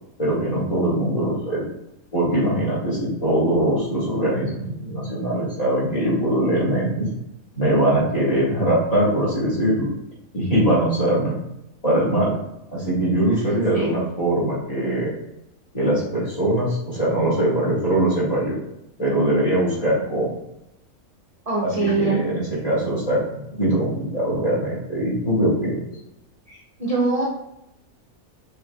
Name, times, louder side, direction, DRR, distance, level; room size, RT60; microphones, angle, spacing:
voice 1, 0.2-1.6 2.1-7.1 7.6-9.9 10.3-11.4 11.8-12.4 12.7-15.2 15.7-18.6 19.0-20.4 21.6-25.8, right 1 dB, 25° left, -8 dB, 1.8 m, -22 dB
voice 2, 13.3-14.0 21.5-22.2 26.5-27.3, right 3 dB, 35° right, -4 dB, 0.6 m, -24 dB
6.0 x 3.5 x 2.3 m, 0.84 s
omnidirectional pair, 1.5 m